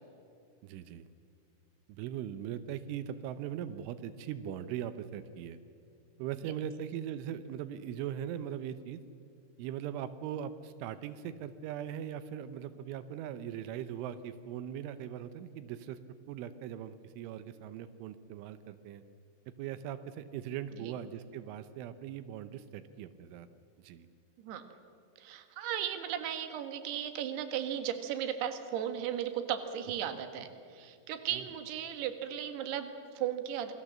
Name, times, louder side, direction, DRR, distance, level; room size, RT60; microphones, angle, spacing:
voice 1, 0.6-1.1 1.9-5.6 6.2-9.0 9.6-16.0 16.3-19.0 19.6-23.5 23.8-24.1 31.3-31.4, right 10 dB, 90° right, 12 dB, 3.3 m, -40 dB
voice 2, 25.2-33.7, right 10 dB, 65° right, 8 dB, 3.4 m, -36 dB
27.5 x 21.5 x 7.4 m, 2.4 s
omnidirectional pair, 5.4 m